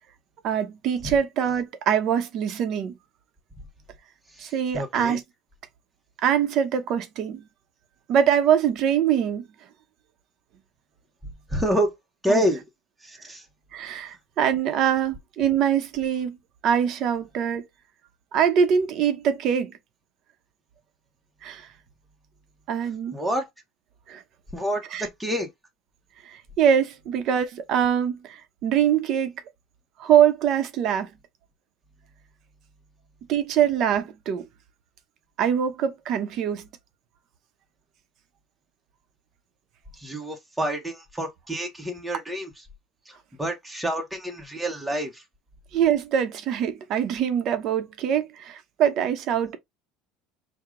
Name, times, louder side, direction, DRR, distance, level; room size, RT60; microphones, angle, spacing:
voice 1, 0.4-3.0 4.4-5.2 6.2-7.4 8.1-9.5 12.3-12.4 13.7-16.4 16.6-17.7 18.3-19.8 21.4-21.7 22.7-23.1 24.1-24.2 24.9-25.1 26.3-29.3 30.0-31.1 33.3-34.4 35.4-36.7 45.7-49.6, right 8 dB, 55° right, 0.9 m, -23 dB
voice 2, 4.3-5.2 11.5-11.9 12.2-12.6 13.0-13.4 23.1-23.5 24.5-25.5 39.9-42.5 43.1-45.2, equal, 5° right, 1.0 m, -28 dB
4.7 x 2.3 x 3.7 m
supercardioid pair, 120°, 0 cm